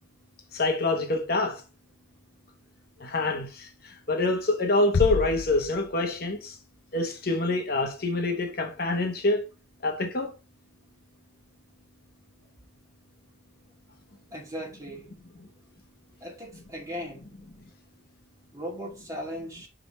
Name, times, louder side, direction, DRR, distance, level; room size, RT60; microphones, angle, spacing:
voice 1, 0.5-1.6 3.0-6.6 6.9-9.4 9.8-10.3, left 2 dB, 50° left, 1.0 m, -26 dB
sound 1, 4.9-6.6, left 4 dB, 65° left, 0.5 m, -30 dB
voice 2, 14.3-15.1 16.2-17.3 18.5-19.7, equal, 15° right, 2.4 m, -37 dB
6.0 x 5.1 x 4.2 m
head